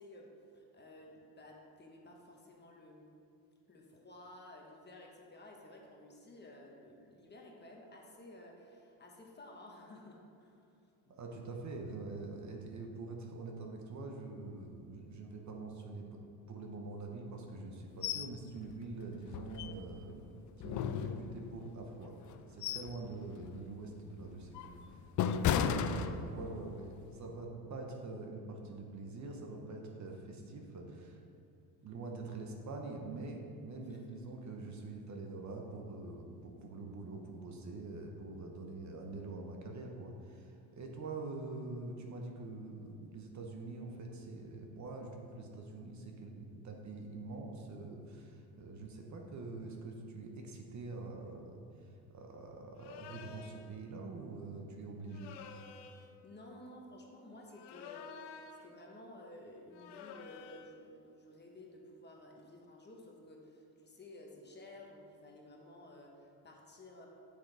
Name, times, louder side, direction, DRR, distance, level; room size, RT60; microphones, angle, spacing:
voice 1, 0.0-3.1 3.7-10.8 11.1-11.2 31.8-32.0 33.8-34.2 56.0-58.1 58.6-67.1, left 1 dB, 25° left, -1 dB, 1.2 m, -54 dB
voice 2, 11.1-16.2 16.5-20.3 20.6-22.1 22.5-24.7 25.3-31.2 31.8-55.3, right 3 dB, 40° right, 2 dB, 1.0 m, -45 dB
sound 1, 18.0-18.3 18.7-18.8 19.3-20.1 20.6-21.6 22.2-23.0 23.4-23.6 24.2-26.6 27.0-27.2, left 8 dB, 45° left, 0.4 m, -35 dB
sound 2, 52.8-53.7 55.1-56.1 57.5-58.7 59.7-60.8, left 6 dB, 75° left, 0.7 m, -51 dB
7.9 x 6.6 x 3.4 m, 2.4 s
cardioid pair, 100°, 43 cm